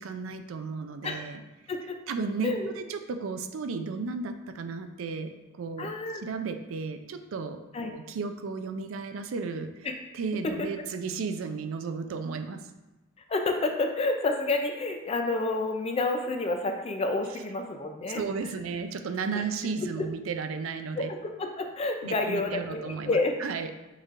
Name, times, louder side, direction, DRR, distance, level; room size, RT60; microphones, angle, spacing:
voice 1, 0.0-1.4 2.1-5.3 5.6-9.7 10.1-12.6 18.1-21.1 22.0-23.7, right 4 dB, 75° right, 8 dB, 0.4 m, -34 dB
voice 2, 5.8-6.2 7.7-7.9 10.6-10.7 13.3-18.2 19.3-19.4 20.0-20.1 21.0-23.3, left 2 dB, 30° left, 5 dB, 0.4 m, -29 dB
6.4 x 3.2 x 2.5 m, 1.0 s
head